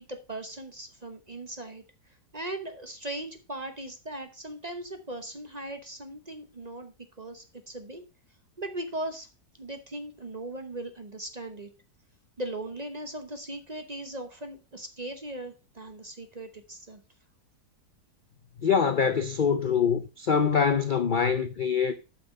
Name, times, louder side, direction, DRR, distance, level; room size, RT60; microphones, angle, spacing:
voice 1, 0.0-8.0 8.6-9.3 9.6-11.7 12.4-17.0, right 1 dB, 30° right, 0.8 m, -39 dB
voice 2, 18.6-21.9, left 6 dB, 65° left, 0.4 m, -24 dB
8.5 x 5.8 x 5.3 m
omnidirectional pair, 1.8 m